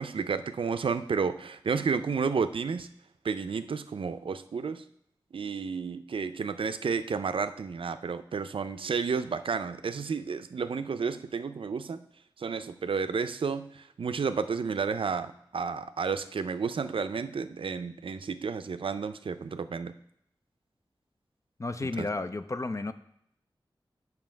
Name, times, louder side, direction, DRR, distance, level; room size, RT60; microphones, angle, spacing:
voice 1, 0.0-2.9 3.2-4.8 5.3-12.0 12.4-19.9 22.0-22.1, right 5 dB, 75° right, 11 dB, 0.4 m, -31 dB
voice 2, 21.6-22.9, left 3 dB, 35° left, 11 dB, 0.5 m, -32 dB
7.6 x 5.9 x 4.5 m, 0.72 s
wide cardioid pair, 80°, 9 cm